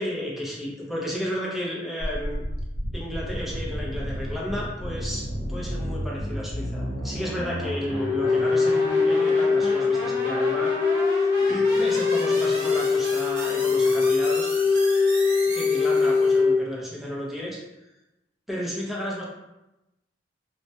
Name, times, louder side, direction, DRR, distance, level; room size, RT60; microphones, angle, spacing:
voice 1, 0.0-2.4 2.9-10.7 11.0-14.5 15.4-17.6 18.5-19.2, equal, ahead, -5 dB, 0.5 m, -33 dB
sound 1, 2.0-16.4, equal, 70° right, 0.7 m, -33 dB
Wind instrument woodwind instrument, 8.0-16.6, left 4 dB, 50° left, 0.5 m, -22 dB
2.3 x 2.1 x 2.6 m, 0.97 s
head